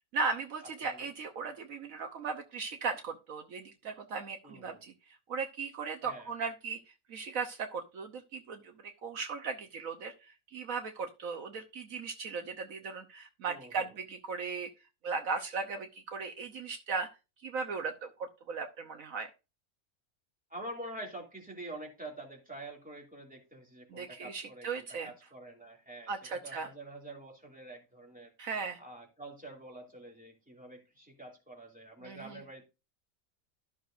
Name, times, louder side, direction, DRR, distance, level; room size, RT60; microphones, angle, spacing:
voice 1, 0.1-14.7 15.0-17.1 17.4-19.3 23.9-25.1 26.1-26.7 28.4-28.8 32.0-32.4, right 4 dB, 70° right, 6 dB, 1.3 m, -37 dB
voice 2, 4.4-4.8 6.0-6.3 13.5-13.9 20.5-28.3 28.8-32.7, right 1 dB, 5° right, 0 dB, 2.6 m, -47 dB
13.0 x 6.3 x 2.6 m, 0.28 s
omnidirectional pair, 1.5 m